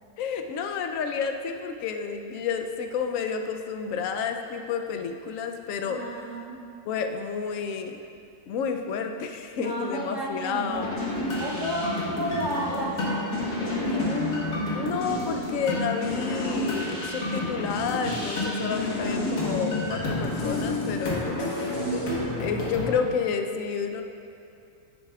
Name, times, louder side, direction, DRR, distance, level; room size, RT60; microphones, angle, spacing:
voice 1, 0.2-6.0 6.9-8.0 8.5-11.0 13.9-21.4 22.4-24.0, left 6 dB, 70° left, 5 dB, 0.8 m, -30 dB
voice 2, 5.8-6.6 9.6-11.0 11.4-14.1, right 1 dB, 60° right, -7 dB, 1.2 m, -32 dB
sound 1, 10.7-22.9, left 1 dB, 85° left, 1.9 m, -29 dB
9.8 x 8.1 x 2.3 m, 2.5 s
omnidirectional pair, 1.6 m